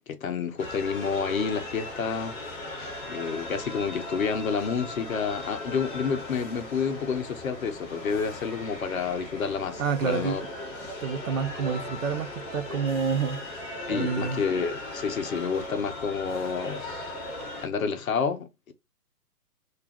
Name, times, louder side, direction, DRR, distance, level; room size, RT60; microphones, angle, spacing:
voice 1, 0.1-2.4 3.1-10.4 13.9-16.8 17.6-18.7, left 6 dB, 60° left, 0.6 m, -29 dB
sound 1, 0.6-17.7, left 2 dB, 15° left, 0.8 m, -38 dB
voice 2, 9.8-10.4 11.0-13.4 13.9-14.4, right 6 dB, 55° right, 0.5 m, -28 dB
2.4 x 2.2 x 3.3 m
figure-of-eight pair, 125°, 48 cm